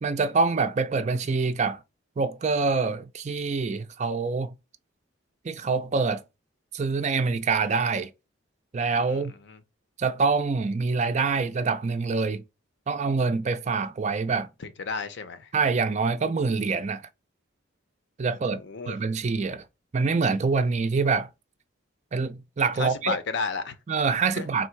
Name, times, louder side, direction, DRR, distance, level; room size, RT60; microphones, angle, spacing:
voice 1, 0.0-1.8 2.2-4.5 5.4-6.2 6.7-8.1 8.7-9.3 10.0-12.4 12.9-14.5 15.5-17.0 18.2-18.6 18.9-19.6 19.9-21.3 22.1-23.2 23.9-24.7, right 4 dB, 35° right, 0.4 m, -25 dB
voice 2, 9.1-9.6 14.6-15.5 18.5-19.0 22.8-23.8 24.3-24.5, left 4 dB, 60° left, 0.6 m, -33 dB
3.8 x 2.6 x 4.5 m
head